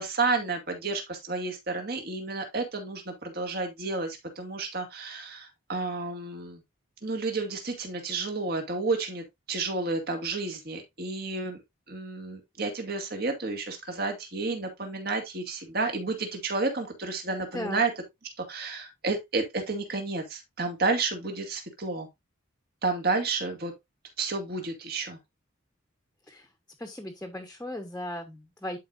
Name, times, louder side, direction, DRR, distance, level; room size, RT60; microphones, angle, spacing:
voice 1, 0.0-6.6 7.0-11.6 11.9-17.9 18.5-22.1 22.8-23.7 24.2-25.2, right 3 dB, 50° right, 2.0 m, -31 dB
voice 2, 26.8-28.8, left 1 dB, 10° left, 1.1 m, -37 dB
11.0 x 4.9 x 2.5 m
head